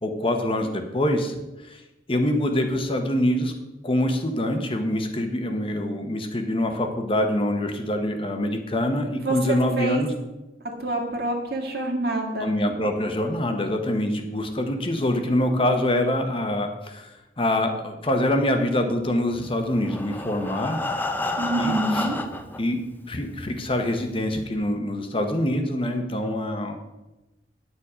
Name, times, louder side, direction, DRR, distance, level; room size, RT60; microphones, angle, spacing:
voice 1, 0.0-1.3 1.7-1.8 2.1-3.5 3.8-10.1 12.4-20.8 21.6-22.1 22.6-22.8 23.1-26.8, left 1 dB, 30° left, 5 dB, 1.0 m, -25 dB
voice 2, 9.2-10.0 10.8-12.5 21.4-22.2, right 2 dB, 60° right, 2 dB, 1.9 m, -26 dB
Breathing, 19.7-22.6 23.4-23.5 23.8-23.9 24.4-24.5, left 2 dB, 10° left, 0.6 m, -29 dB
10.5 x 7.1 x 5.0 m, 1.0 s
head